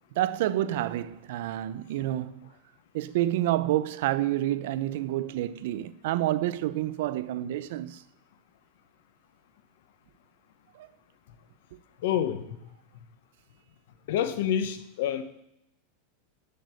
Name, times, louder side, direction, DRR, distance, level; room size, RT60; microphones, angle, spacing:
voice 1, 0.2-2.5 2.9-8.0 10.7-10.9, right 14 dB, 65° right, 0.5 m, -28 dB
voice 2, 12.0-12.6 14.1-15.2, left 9 dB, 70° left, 1.1 m, -28 dB
7.8 x 6.6 x 8.2 m
supercardioid pair, 150°, 0 cm